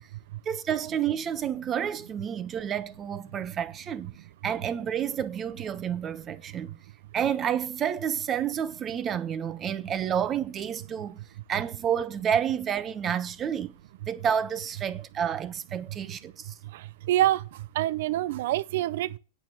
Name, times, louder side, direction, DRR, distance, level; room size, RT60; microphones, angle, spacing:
voice 1, 0.4-4.1 4.4-6.8 7.1-11.2 11.5-13.7 14.1-16.5, right 8 dB, 25° right, 1.1 m, -30 dB
voice 2, 16.7-19.2, right 14 dB, 65° right, 0.7 m, -27 dB
8.9 x 7.1 x 8.1 m
hypercardioid pair, 130°, 0 cm